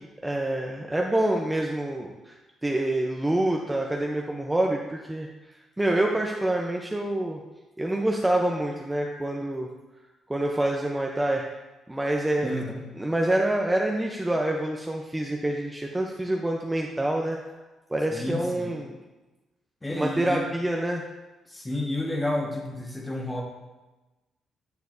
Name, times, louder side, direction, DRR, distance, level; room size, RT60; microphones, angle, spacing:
voice 1, 0.0-2.4 2.6-5.3 5.8-7.4 7.8-9.7 10.3-11.5 11.9-12.5 13.0-17.4 17.9-19.0 19.9-21.0, right 1 dB, 10° right, 0 dB, 0.7 m, -26 dB
voice 2, 12.4-12.9 18.1-18.8 19.8-20.4 21.5-23.4, left 1 dB, 15° left, 0 dB, 1.5 m, -31 dB
9.4 x 6.9 x 2.7 m, 1.1 s
cardioid pair, 90°, 0 cm